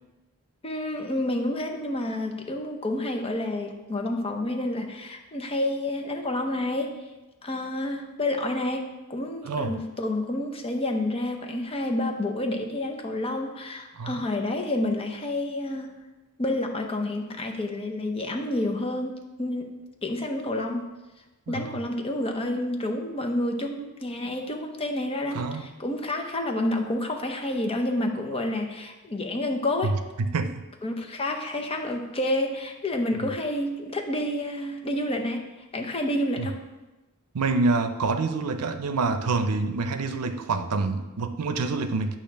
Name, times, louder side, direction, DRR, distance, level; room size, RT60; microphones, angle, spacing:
voice 1, 0.6-7.0 7.4-16.0 16.4-19.7 20.0-20.9 21.5-30.0 30.8-35.5 35.7-36.6, left 1 dB, 25° left, 3 dB, 0.7 m, -29 dB
voice 2, 21.5-21.8 25.3-25.7 29.8-29.9 30.2-30.6 36.4-36.5 37.3-42.2, right 3 dB, 90° right, 9 dB, 0.5 m, -27 dB
8.6 x 2.9 x 5.8 m, 1.1 s
head